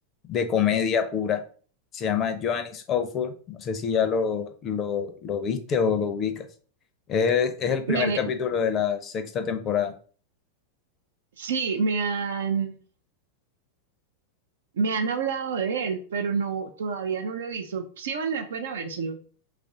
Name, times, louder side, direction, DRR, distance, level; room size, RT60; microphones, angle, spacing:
voice 1, 0.3-1.4 1.9-6.5 7.1-9.9, left 7 dB, 30° left, 8 dB, 0.5 m, -26 dB
voice 2, 7.9-8.2 11.4-12.8 14.7-19.2, right 5 dB, 60° right, 6 dB, 0.4 m, -28 dB
3.2 x 2.5 x 3.6 m, 0.41 s
figure-of-eight pair, 90°, 0 cm